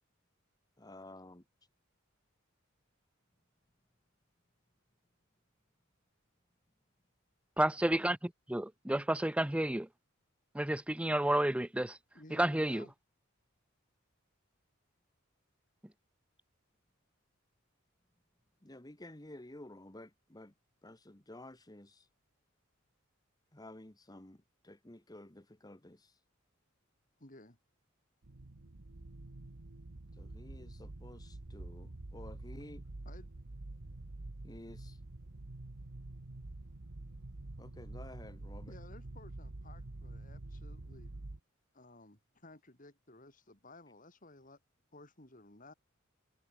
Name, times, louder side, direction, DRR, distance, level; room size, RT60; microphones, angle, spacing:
voice 1, 0.8-1.4 7.8-8.0 18.6-20.5 20.8-22.1 23.5-26.2 30.2-32.8 34.4-35.0 37.6-38.7, left 1 dB, 20° left, 1.4 m, -52 dB
voice 2, 7.6-8.2 8.5-9.9 10.5-12.0 12.3-12.8, right 1 dB, 5° right, 0.4 m, -30 dB
voice 3, 12.1-12.9 27.2-27.6 33.1-33.3 38.7-41.1 41.7-44.6 44.9-45.7, left 2 dB, 40° left, 4.1 m, -56 dB
sound 1, 28.2-41.4, right 2 dB, 80° right, 1.3 m, -47 dB
head